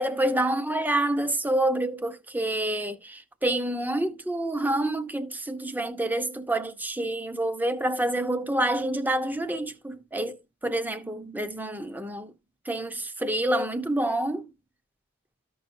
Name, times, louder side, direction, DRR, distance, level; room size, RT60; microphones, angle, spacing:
voice 1, 0.0-12.3 12.6-14.5, right 1 dB, 10° right, 0.7 m, -28 dB
14.0 x 5.5 x 2.7 m
head